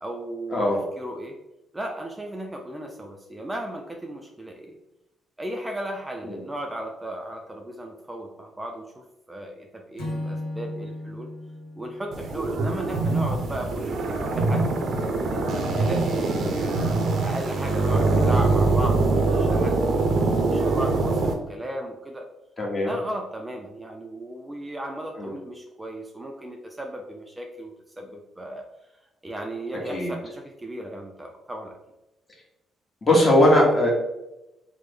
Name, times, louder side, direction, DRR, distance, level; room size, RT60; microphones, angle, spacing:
voice 1, 0.0-1.4 1.7-4.8 5.4-11.3 11.8-15.3 15.7-16.8 17.2-22.3 22.8-28.7 29.2-31.8, right 1 dB, 15° right, 2 dB, 0.4 m, -36 dB
Acoustic guitar / Strum, 10.0-13.3, left 1 dB, 90° left, 0.7 m, -36 dB
sound 1, 12.1-21.3, right 3 dB, 65° right, 0.5 m, -23 dB
voice 2, 22.6-22.9 25.2-25.3 29.9-30.1 33.0-33.9, left 1 dB, 30° left, -2 dB, 1.1 m, -20 dB
3.2 x 2.0 x 3.4 m, 0.93 s
cardioid pair, 90°, 0 cm